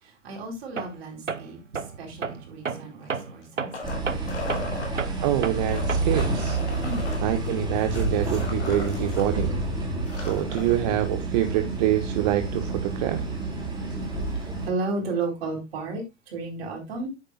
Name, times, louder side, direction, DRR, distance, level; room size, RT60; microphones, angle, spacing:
voice 1, 0.0-1.6 2.0-3.7 6.8-7.1 14.3-17.1, right 3 dB, 55° right, 4.4 m, -33 dB
Tools, 0.8-1.0 1.3-6.3, right 5 dB, 85° right, 0.8 m, -33 dB
sound 1, 3.0-4.9 5.6-9.3 9.6-9.7 10.0-10.8 12.3-12.4, left 3 dB, 65° left, 3.2 m, -38 dB
sound 2, 3.8-14.7, right 2 dB, 10° right, 3.9 m, -29 dB
voice 2, 5.2-6.6 7.2-9.5 10.1-13.3, right 13 dB, 35° right, 0.7 m, -26 dB
9.7 x 8.5 x 2.4 m
figure-of-eight pair, 105°, 37 cm